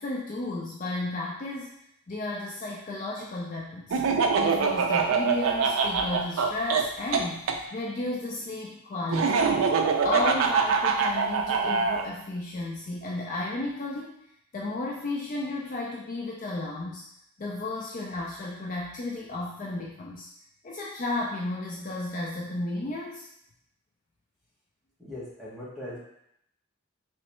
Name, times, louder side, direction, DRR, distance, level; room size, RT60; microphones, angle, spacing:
voice 1, 0.0-1.7 2.1-4.0 4.3-7.4 7.7-9.5 10.0-14.1 14.5-17.0 17.4-20.3 20.6-23.3, left 2 dB, 35° left, -3 dB, 0.3 m, -33 dB
Laughter, 3.9-7.6 9.1-12.0, right 5 dB, 70° right, 0.4 m, -24 dB
voice 2, 25.0-26.0, left 1 dB, ahead, -8 dB, 1.0 m, -39 dB
3.1 x 3.1 x 3.0 m, 0.75 s
head